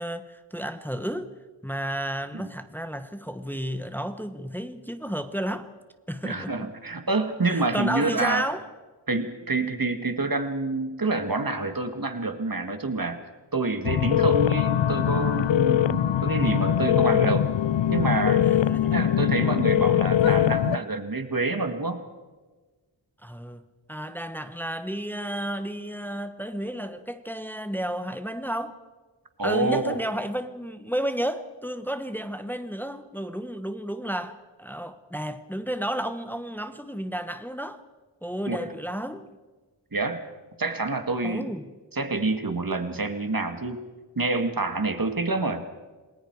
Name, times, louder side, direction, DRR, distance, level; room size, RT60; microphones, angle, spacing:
voice 1, 0.0-1.3 1.6-5.7 6.1-6.7 7.5-8.6 18.4-19.0 23.2-23.6 23.9-28.8 29.4-37.8 38.2-39.3 41.2-41.7, equal, 5° left, 1.1 m, -32 dB
voice 2, 6.2-8.5 9.1-13.2 13.5-17.5 17.9-18.4 18.8-22.0 29.4-30.0 38.5-38.7 39.9-40.2 40.6-41.5 41.9-43.8 44.2-45.6, right 3 dB, 45° right, 2.1 m, -27 dB
sound 1, 13.8-20.8, left 10 dB, 70° left, 0.5 m, -22 dB
28.0 x 20.0 x 4.8 m
wide cardioid pair, 65°, 46 cm